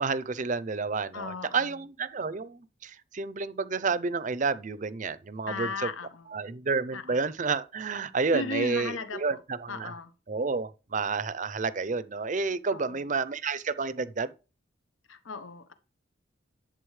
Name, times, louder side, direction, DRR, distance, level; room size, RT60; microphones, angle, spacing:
voice 1, 0.0-5.9 6.3-9.9 10.3-14.3, right 4 dB, 40° right, 0.5 m, -30 dB
voice 2, 1.1-1.7 5.5-6.3 6.9-7.2 8.3-9.4 9.7-10.1 12.7-13.1 15.1-15.7, left 4 dB, 80° left, 1.0 m, -36 dB
11.0 x 7.6 x 3.2 m
head